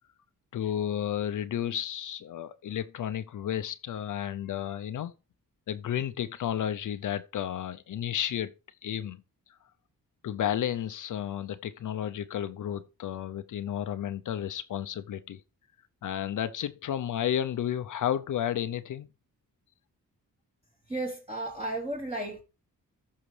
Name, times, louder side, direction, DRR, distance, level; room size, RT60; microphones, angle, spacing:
voice 1, 0.5-5.1 5.7-8.5 8.8-9.2 10.2-15.4 16.0-19.1, left 10 dB, 60° left, 0.6 m, -32 dB
voice 2, 20.9-22.4, right 1 dB, 20° right, 1.2 m, -34 dB
14.0 x 5.7 x 3.2 m
cardioid pair, 100°, 34 cm